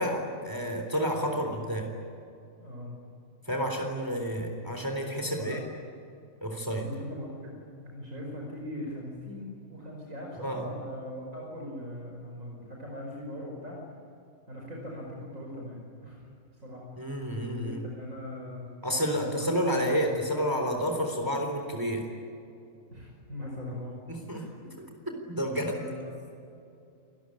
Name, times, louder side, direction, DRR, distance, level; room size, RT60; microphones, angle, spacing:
voice 1, 0.0-1.9 3.5-5.6 6.4-6.9 10.4-10.7 17.0-17.8 18.8-22.0 24.1-24.5 24.8-24.9 25.3-25.8, equal, 15° right, 3 dB, 3.8 m, -30 dB
voice 2, 2.6-3.0 5.4-5.6 6.8-7.5 7.8-13.8 14.5-16.3 16.6-17.0 17.6-18.6 19.2-20.4 22.9-24.0 24.3-24.5 25.7-26.0, left 1 dB, 65° right, -1 dB, 5.7 m, -40 dB
29.0 x 20.0 x 10.0 m, 2.5 s
omnidirectional pair, 1.4 m